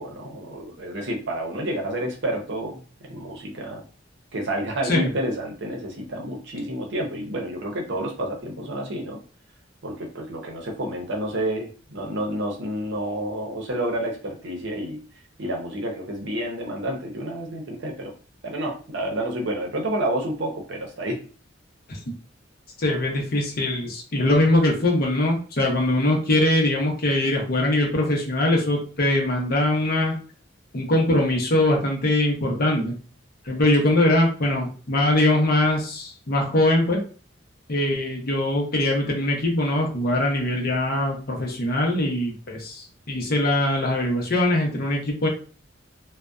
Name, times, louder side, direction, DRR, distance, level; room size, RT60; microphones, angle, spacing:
voice 1, 0.0-3.8 4.3-9.2 9.8-15.0 15.4-18.1 18.4-21.2, right 1 dB, 65° right, 1 dB, 0.7 m, -29 dB
voice 2, 22.8-30.2 30.7-32.9 33.5-37.0 37.7-45.3, left 1 dB, 50° left, 0 dB, 0.7 m, -22 dB
2.6 x 2.1 x 2.3 m, 0.38 s
head